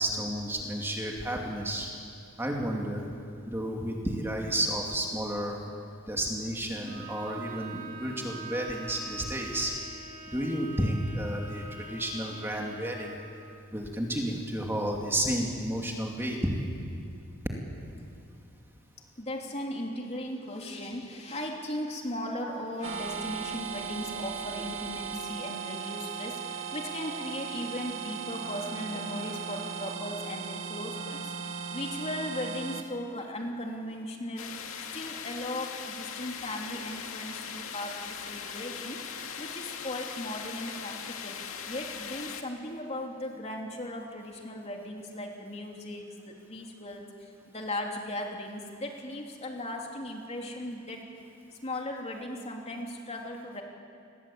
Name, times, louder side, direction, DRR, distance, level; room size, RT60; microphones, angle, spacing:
voice 1, 0.0-1.9 2.4-3.1 3.5-5.6 6.1-9.7 10.3-13.1 13.7-16.5, right 1 dB, 10° right, 0 dB, 2.6 m, -31 dB
Bowed string instrument, 6.8-13.3, right 3 dB, 40° right, 2.5 m, -44 dB
voice 2, 19.2-34.6 34.9-39.0 39.4-41.4 41.7-51.0 51.5-53.6, left 1 dB, 30° left, 1 dB, 3.2 m, -37 dB
sound 1, 22.8-32.8, right 6 dB, 70° right, 1.9 m, -37 dB
sound 2, 34.4-42.4, left 7 dB, 90° left, 2.2 m, -40 dB
29.0 x 21.0 x 8.8 m, 2.5 s
head